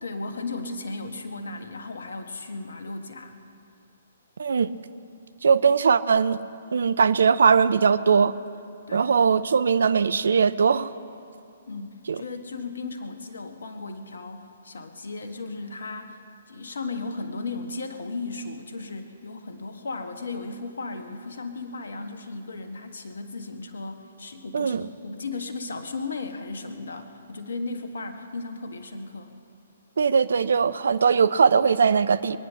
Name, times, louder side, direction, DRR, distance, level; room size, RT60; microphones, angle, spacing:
voice 1, 0.0-3.4 8.9-9.1 11.7-16.2 16.5-29.3, left 3 dB, 65° left, 6 dB, 1.4 m, -35 dB
voice 2, 4.4-4.7 5.4-6.4 6.7-8.3 8.9-10.9 12.1-12.2 24.5-24.8 30.0-32.4, right 6 dB, 60° right, 14 dB, 0.5 m, -20 dB
23.0 x 9.5 x 5.8 m, 2.5 s
figure-of-eight pair, 125°, 0 cm